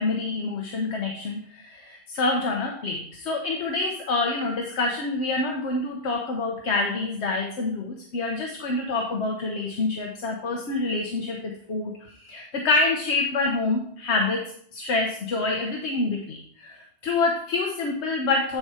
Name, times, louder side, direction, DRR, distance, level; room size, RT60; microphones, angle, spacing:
voice 1, 0.0-18.6, left 3 dB, 75° left, 2 dB, 1.2 m, -27 dB
10.0 x 4.2 x 4.8 m, 0.63 s
omnidirectional pair, 1.1 m